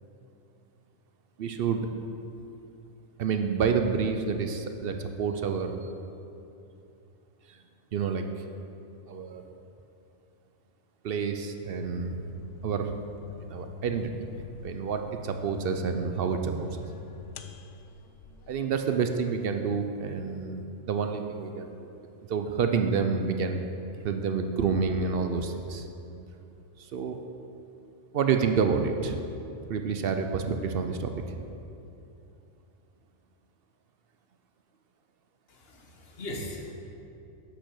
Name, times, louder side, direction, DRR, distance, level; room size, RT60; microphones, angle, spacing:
voice 1, 1.4-1.9 3.2-5.8 7.5-7.6 7.9-8.4 9.1-9.4 11.0-12.2 12.6-12.9 13.4-14.1 14.6-16.7 18.5-21.9 22.3-23.6 24.0-25.9 26.8-27.2 28.1-29.2 29.7-31.4, right 6 dB, 60° right, 6 dB, 0.6 m, -28 dB
sound 1, 11.8-18.8, left 4 dB, 70° left, 0.8 m, -44 dB
voice 2, 35.5-36.7, left 1 dB, 50° left, 1 dB, 1.3 m, -39 dB
8.0 x 6.3 x 6.4 m, 2.8 s
omnidirectional pair, 1.4 m